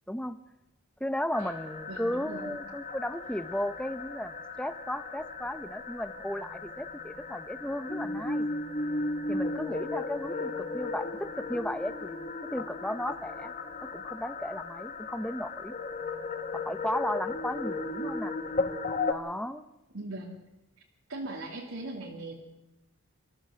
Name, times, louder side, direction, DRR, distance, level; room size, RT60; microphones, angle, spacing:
voice 1, 0.1-0.4 1.0-8.5 9.3-13.5 13.8-15.8 16.5-18.3 19.1-19.6, left 1 dB, 5° left, 12 dB, 0.7 m, -35 dB
sound 1, 1.3-19.1, left 3 dB, 35° left, 1.2 m, -36 dB
voice 2, 1.9-2.6 19.9-20.4 21.1-22.3, right 2 dB, 70° right, -2 dB, 2.6 m, -39 dB
25.5 x 14.0 x 7.9 m, 0.99 s
head